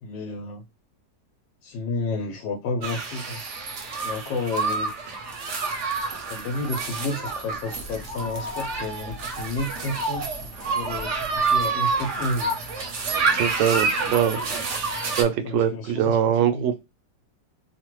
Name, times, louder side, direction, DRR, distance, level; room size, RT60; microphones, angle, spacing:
voice 1, 0.0-0.6 1.6-3.4 4.0-5.2 6.3-12.5 15.4-16.4, left 2 dB, 85° left, 1.3 m, -31 dB
sound 1, 2.8-15.2, right 4 dB, 55° right, 0.8 m, -28 dB
voice 2, 13.3-14.4 15.2-16.8, right 9 dB, 80° right, 1.2 m, -22 dB
3.1 x 2.2 x 3.0 m
omnidirectional pair, 2.0 m